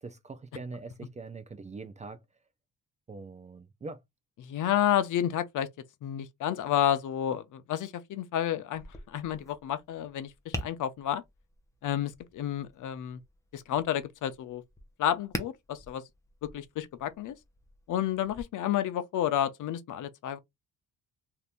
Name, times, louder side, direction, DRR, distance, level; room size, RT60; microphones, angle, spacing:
voice 1, 0.0-2.2 3.1-4.0, right 3 dB, 20° right, 0.4 m, -42 dB
voice 2, 4.4-5.7 6.0-11.2 11.8-13.2 13.5-14.6 15.0-16.0 16.5-17.3 17.9-20.4, left 11 dB, 65° left, 0.6 m, -30 dB
Tap, 8.7-18.4, left 1 dB, 10° left, 0.7 m, -45 dB
2.8 x 2.5 x 3.4 m
cardioid pair, 120°, 33 cm